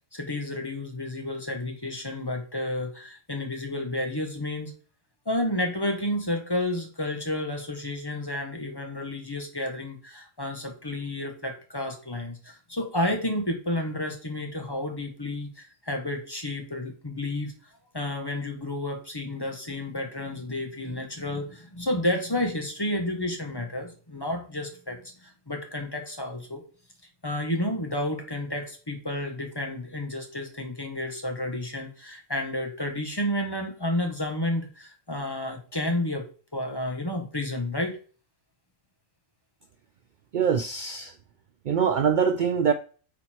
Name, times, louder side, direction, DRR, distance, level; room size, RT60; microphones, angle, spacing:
voice 1, 0.1-4.7 5.2-17.5 17.9-26.6 27.2-36.2 36.5-38.0, left 1 dB, 20° left, 2 dB, 1.5 m, -31 dB
voice 2, 40.3-41.1 41.7-42.7, right 7 dB, 70° right, 9 dB, 0.4 m, -23 dB
8.5 x 4.4 x 4.5 m, 0.39 s
omnidirectional pair, 1.4 m